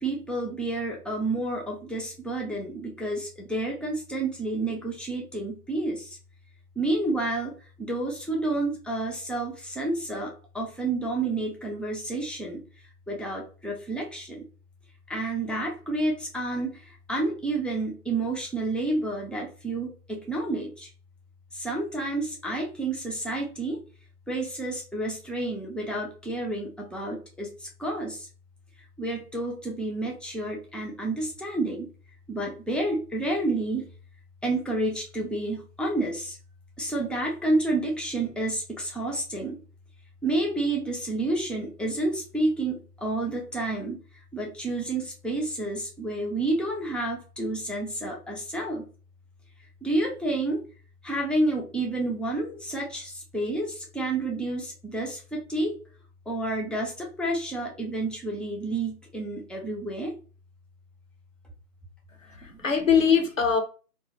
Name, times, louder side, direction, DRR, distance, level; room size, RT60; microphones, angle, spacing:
voice 1, 0.0-6.2 6.8-12.6 13.1-14.4 15.1-20.9 21.5-23.8 24.3-28.3 29.0-31.9 32.3-33.9 34.4-36.4 36.8-39.6 40.2-48.9 49.8-50.6 51.0-55.8 56.3-60.2 62.5-62.6, right 2 dB, ahead, 0.4 m, -30 dB
voice 2, 62.2-63.6, left 7 dB, 55° left, 0.6 m, -22 dB
2.2 x 2.1 x 2.8 m
figure-of-eight pair, 175°, 48 cm